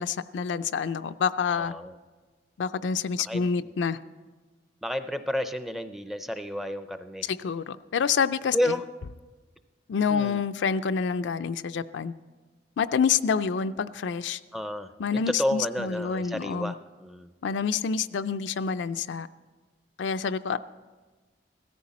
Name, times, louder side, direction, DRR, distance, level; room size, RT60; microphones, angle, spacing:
voice 1, 0.0-1.7 2.6-4.0 7.2-8.7 9.9-12.1 12.8-14.4 15.0-16.7 17.4-19.3 20.0-20.6, left 6 dB, 75° left, 11 dB, 0.4 m, -27 dB
voice 2, 1.6-2.0 3.1-3.5 4.8-7.3 8.5-8.8 10.1-10.4 14.5-16.7 17.0-17.3, left 1 dB, ahead, 10 dB, 0.4 m, -31 dB
16.0 x 13.5 x 4.2 m, 1.3 s
head